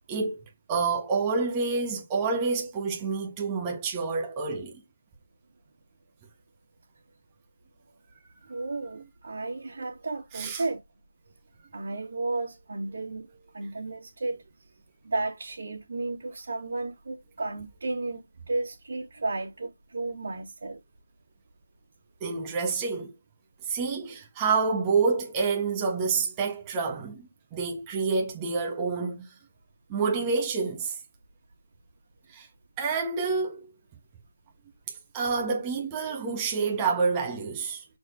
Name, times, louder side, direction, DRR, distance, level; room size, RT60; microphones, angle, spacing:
voice 1, 0.1-4.7 10.3-10.6 22.2-23.1 23.6-29.3 29.9-31.0 32.3-32.5 32.8-33.7 35.1-37.8, right 4 dB, 15° right, 1.5 m, -28 dB
voice 2, 8.5-10.8 11.7-13.3 13.5-14.4 15.1-18.2 18.5-20.8, right 2 dB, 65° right, 2.5 m, -33 dB
6.3 x 4.5 x 3.9 m
figure-of-eight pair, 165°, 0 cm